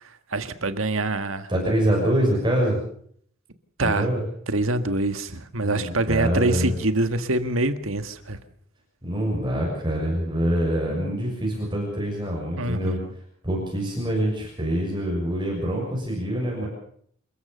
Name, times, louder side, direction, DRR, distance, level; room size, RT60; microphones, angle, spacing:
voice 1, 0.3-1.5 3.8-4.1 4.5-8.4 12.6-13.1, right 2 dB, 80° right, 10 dB, 1.7 m, -25 dB
voice 2, 1.5-2.8 3.8-4.2 5.6-6.7 9.0-13.0 13.4-16.7, equal, 25° right, -2 dB, 6.6 m, -25 dB
27.5 x 14.5 x 6.9 m, 0.63 s
head